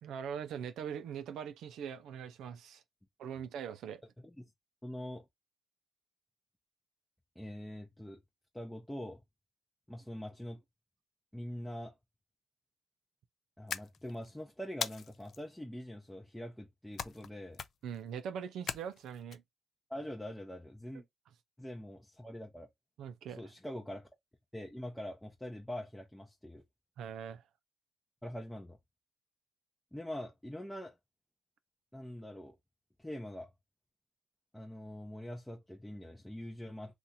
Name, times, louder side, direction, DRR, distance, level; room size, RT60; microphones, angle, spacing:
voice 1, 0.0-2.8 3.2-4.0 17.8-19.4 23.0-23.4 27.0-27.4, right 8 dB, 80° right, 0.4 m, -41 dB
voice 2, 4.8-5.3 7.4-8.2 8.5-9.2 9.9-10.6 11.3-11.9 13.6-17.6 19.9-21.0 21.6-22.7 23.4-24.1 24.5-26.6 28.2-28.8 29.9-31.0 31.9-32.6 33.0-33.5 34.5-36.9, left 1 dB, 5° left, 0.6 m, -44 dB
sound 1, 13.7-14.3 14.8-15.4 17.0-17.3 17.5-18.0 18.7-19.4, left 7 dB, 55° left, 0.4 m, -39 dB
2.8 x 2.4 x 4.0 m
cardioid pair, 90°, 0 cm